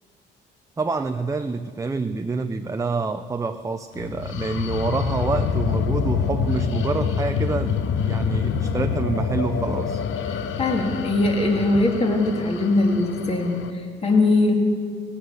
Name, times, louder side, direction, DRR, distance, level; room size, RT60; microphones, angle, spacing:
voice 1, 0.8-7.7 8.0-10.0, right 4 dB, 15° right, 8 dB, 0.5 m, -27 dB
sound 1, 4.0-13.7, left 7 dB, 80° left, 0.8 m, -26 dB
voice 2, 10.3-14.5, left 2 dB, 30° left, 1 dB, 2.3 m, -21 dB
18.5 x 7.8 x 7.9 m, 2.1 s
cardioid pair, 90°, 20 cm